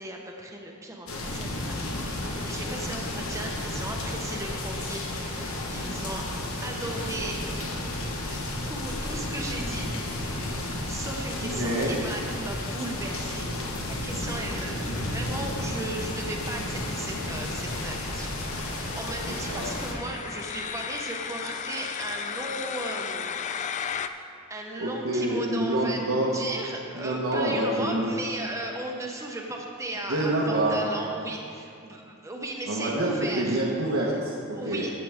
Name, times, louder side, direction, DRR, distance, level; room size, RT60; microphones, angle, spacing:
voice 1, 0.0-6.2 6.6-8.0 8.3-8.4 8.7-10.5 10.8-13.4 13.8-23.4 24.5-26.0 26.3-33.6 34.5-34.9, right 2 dB, 15° right, 0 dB, 0.8 m, -36 dB
sound 1, 1.1-19.9, left 1 dB, 75° left, 1.3 m, -32 dB
voice 2, 2.7-3.1 11.4-12.0 19.5-19.7 24.8-26.3 26.9-28.1 30.1-30.9 32.7-34.8, right 1 dB, 80° right, -5 dB, 1.3 m, -27 dB
sound 2, 15.8-24.1, left 7 dB, 35° left, 0.3 m, -36 dB
14.0 x 7.6 x 3.6 m, 2.5 s
head